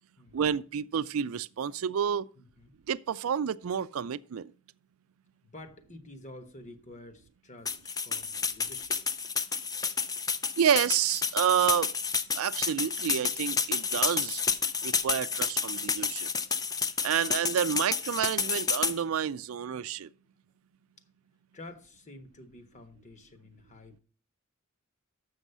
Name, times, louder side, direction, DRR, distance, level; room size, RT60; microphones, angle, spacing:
voice 1, 0.3-2.3 2.9-4.5 10.6-11.9 12.4-14.4 14.8-16.3 17.0-20.1, right 8 dB, 80° right, 0.4 m, -29 dB
voice 2, 2.4-2.7 5.4-8.9 21.5-24.0, left 2 dB, 35° left, 1.2 m, -49 dB
sound 1, 7.7-19.0, left 5 dB, 20° left, 0.5 m, -30 dB
7.3 x 6.3 x 6.7 m
head